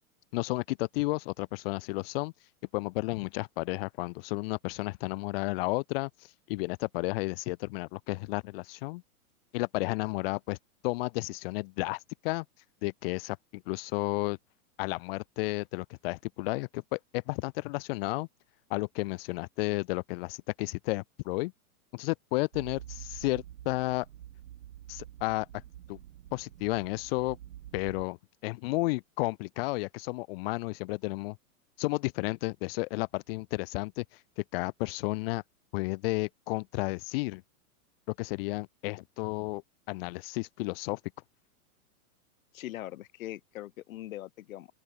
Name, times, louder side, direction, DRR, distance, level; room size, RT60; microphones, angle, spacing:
voice 1, 0.3-2.3 2.7-6.1 6.5-9.0 9.5-10.6 10.8-12.4 12.8-14.4 14.8-18.3 18.7-21.5 21.9-24.1 24.9-25.5 25.9-26.0 26.3-27.4 27.7-28.2 28.4-31.4 31.8-34.0 34.4-35.4 35.7-37.4 38.2-39.6 39.9-41.0, left 23 dB, 40° left, 1.2 m, -32 dB
sound 1, 22.5-28.1, right 12 dB, 75° right, 4.1 m, -47 dB
voice 2, 42.5-44.7, left 14 dB, 65° left, 1.8 m, -41 dB
open air
supercardioid pair, 155°, 45 cm